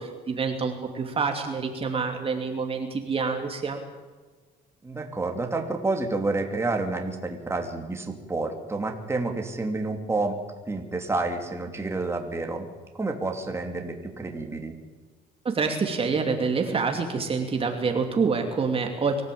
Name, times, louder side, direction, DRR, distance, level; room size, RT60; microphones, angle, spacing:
voice 1, 0.0-3.8 15.4-19.2, right 5 dB, 35° right, 4 dB, 2.7 m, -27 dB
voice 2, 4.8-10.4 10.7-12.7 12.9-14.7, right 3 dB, 15° right, 3 dB, 3.0 m, -29 dB
24.5 x 15.0 x 8.7 m, 1.3 s
cardioid pair, 110°, 17 cm